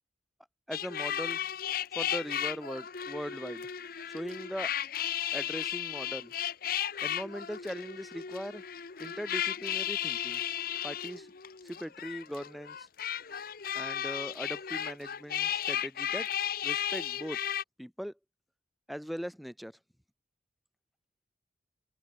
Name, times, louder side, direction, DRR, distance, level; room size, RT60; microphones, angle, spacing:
sound 1, 0.7-17.6, left 10 dB, 55° left, 0.8 m, -35 dB
voice 1, 0.7-1.4 1.9-3.7 4.1-4.7 5.3-6.3 7.0-8.6 9.0-10.4 10.8-11.3 11.6-12.9 13.7-16.3 16.6-17.4 17.8-18.1 18.9-19.8, equal, ahead, 0.8 m, -40 dB
open air
head